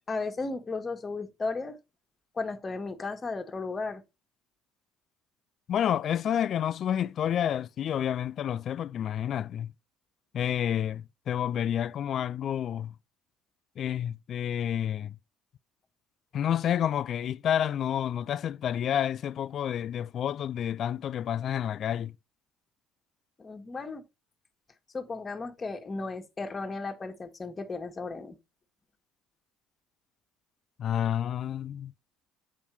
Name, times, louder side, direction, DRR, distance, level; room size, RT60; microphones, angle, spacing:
voice 1, 0.1-1.8 2.3-4.0 23.4-24.0 24.9-28.4, left 3 dB, 25° left, 1.4 m, -35 dB
voice 2, 5.7-9.7 10.3-12.9 13.8-15.2 16.3-22.1 30.8-31.9, left 9 dB, 50° left, 0.3 m, -29 dB
8.6 x 3.5 x 4.5 m
supercardioid pair, 95°, 0 cm